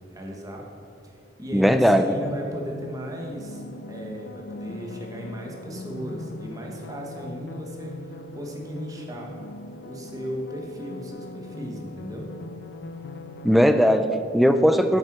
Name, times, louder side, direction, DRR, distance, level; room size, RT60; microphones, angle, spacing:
voice 1, 0.1-0.6 1.4-9.3 9.8-12.3, equal, 20° right, -1 dB, 1.3 m, -36 dB
voice 2, 1.5-2.1 13.4-15.0, equal, ahead, 8 dB, 0.4 m, -18 dB
sound 1, 1.7-13.7, left 2 dB, 65° left, 0.5 m, -40 dB
7.8 x 7.4 x 6.1 m, 2.6 s
head